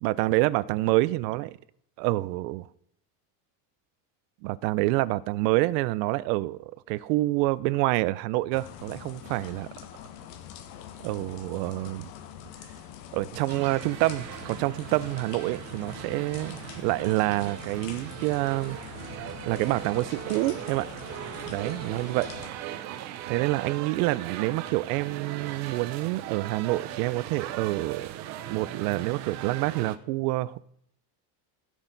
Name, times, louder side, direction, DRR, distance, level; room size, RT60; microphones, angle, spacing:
voice 1, 0.0-1.6 2.0-2.7 4.4-9.7 11.0-12.1 13.1-18.8 19.5-20.9 21.5-22.3 23.3-28.1 28.5-30.7, right 19 dB, 90° right, 0.7 m, -27 dB
sound 1, 8.5-22.5, left 9 dB, 85° left, 1.4 m, -44 dB
sound 2, 13.5-30.0, right 11 dB, 35° right, 0.6 m, -39 dB
15.5 x 6.4 x 4.0 m
cardioid pair, 180°, 48 cm